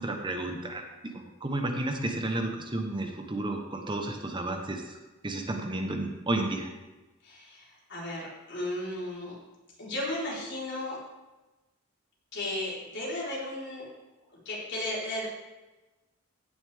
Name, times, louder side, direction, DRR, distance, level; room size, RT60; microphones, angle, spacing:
voice 1, 0.0-5.0 5.2-6.7, right 2 dB, 25° right, 3 dB, 0.9 m, -32 dB
voice 2, 7.2-9.3 9.8-11.0 12.3-13.9 14.4-15.3, left 1 dB, 60° left, -6 dB, 4.1 m, -35 dB
15.5 x 6.9 x 3.5 m, 1.1 s
head